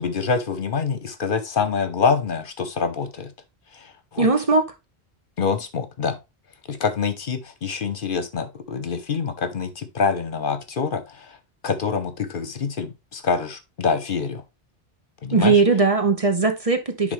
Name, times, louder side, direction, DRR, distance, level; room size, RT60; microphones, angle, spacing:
voice 1, 0.0-3.3 3.7-4.3 5.4-6.2 6.7-11.4 11.6-14.4 15.2-15.6 17.0-17.1, left 5 dB, 55° left, 0.9 m, -26 dB
voice 2, 4.2-4.7 15.3-17.1, right 4 dB, 35° right, 0.9 m, -19 dB
10.0 x 3.7 x 3.2 m
omnidirectional pair, 1.1 m